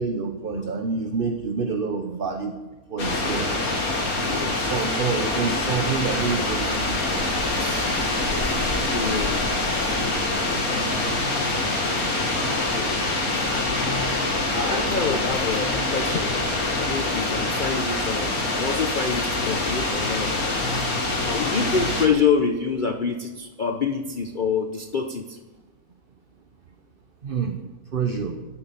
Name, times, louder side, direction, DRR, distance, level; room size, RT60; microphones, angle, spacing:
voice 1, 0.0-2.6 2.9-3.5 4.3-7.3 10.4-10.7 27.2-27.6 27.9-28.5, right 5 dB, 40° right, 6 dB, 1.1 m, -28 dB
sound 1, 3.0-22.1, left 2 dB, 80° left, 2.8 m, -25 dB
voice 2, 4.2-4.7 7.5-8.0 8.3-9.5 12.8-12.9 13.7-13.9 14.5-20.3 21.2-25.4, left 5 dB, 45° left, 7 dB, 0.8 m, -27 dB
13.0 x 9.1 x 9.2 m, 1.1 s
omnidirectional pair, 1.5 m